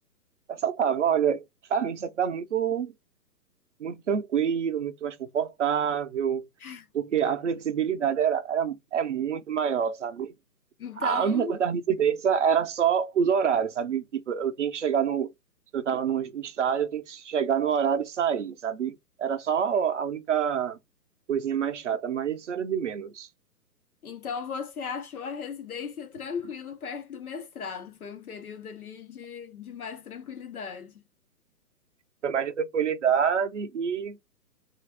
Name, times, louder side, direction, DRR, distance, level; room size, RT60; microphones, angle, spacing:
voice 1, 0.5-1.4 1.7-2.9 3.8-6.5 6.9-10.3 11.0-15.3 15.7-20.8 21.3-23.3 32.2-34.2, right 8 dB, 50° right, 0.5 m, -26 dB
voice 2, 10.8-11.5 24.0-30.9, left 6 dB, 60° left, 1.0 m, -37 dB
3.4 x 2.5 x 3.2 m
hypercardioid pair, 180°, 48 cm